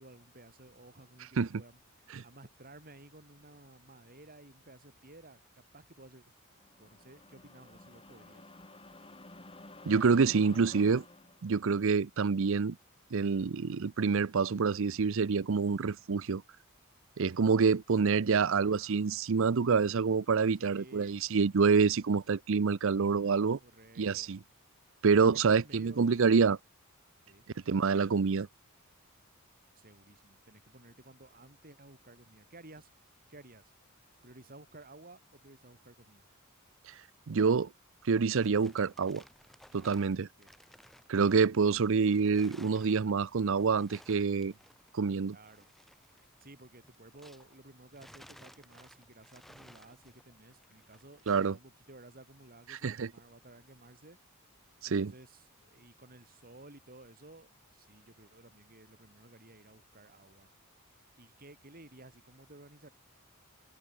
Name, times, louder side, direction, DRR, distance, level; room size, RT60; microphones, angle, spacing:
voice 1, 0.0-6.3 6.8-8.5 18.3-18.8 20.6-21.2 23.6-24.4 24.8-26.3 27.3-27.5 29.8-32.9 33.3-33.7 34.2-36.3 40.2-40.5 45.3-45.7 46.2-54.2 54.9-60.5 61.2-62.9, right 2 dB, 45° right, 4.7 m, -55 dB
sound 1, 6.5-11.6, left 2 dB, 25° left, 6.8 m, -52 dB
voice 2, 9.9-11.0 11.4-12.8 13.1-16.4 17.2-23.6 24.0-24.4 25.0-26.6 27.7-28.5 37.3-37.7 38.0-39.2 39.7-40.3 41.1-44.5 44.9-45.4 51.3-51.6 52.8-53.1 54.8-55.1, right 5 dB, 65° right, 0.5 m, -27 dB
sound 2, 38.4-47.6 47.9-51.6, equal, ahead, 4.7 m, -59 dB
head